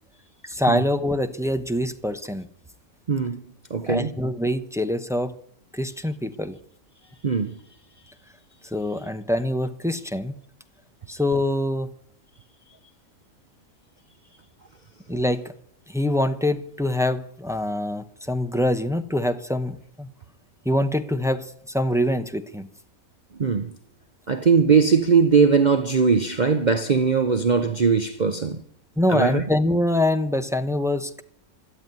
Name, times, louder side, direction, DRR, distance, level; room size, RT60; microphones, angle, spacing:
voice 1, 0.4-2.5 3.9-5.3 5.7-6.6 8.7-10.4 11.1-11.9 15.1-15.5 15.9-20.1 20.6-22.7 29.0-31.2, left 1 dB, 5° right, 0.5 m, -24 dB
voice 2, 3.1-3.4 3.7-4.1 7.2-7.5 23.4-23.7 24.3-28.6 29.1-29.4, right 5 dB, 40° right, 0.7 m, -20 dB
12.5 x 11.0 x 9.4 m
omnidirectional pair, 1.5 m